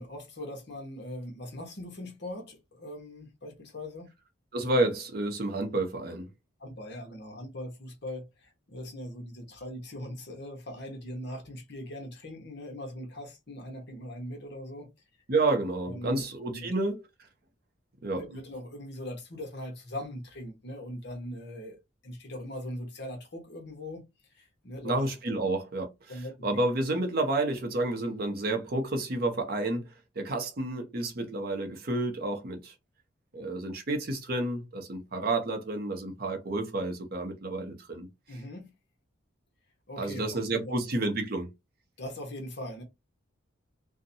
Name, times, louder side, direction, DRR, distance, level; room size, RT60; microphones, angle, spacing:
voice 1, 0.0-4.1 6.6-14.9 15.9-16.7 18.1-21.8 22.0-25.4 26.1-26.5 38.3-38.7 39.9-40.8 42.0-42.8, left 1 dB, 55° left, 0.9 m, -41 dB
voice 2, 4.5-6.3 15.3-17.0 18.0-18.2 24.8-26.1 26.4-32.7 33.3-38.1 40.0-41.5, right 2 dB, 45° right, 0.6 m, -30 dB
2.6 x 2.1 x 2.6 m
head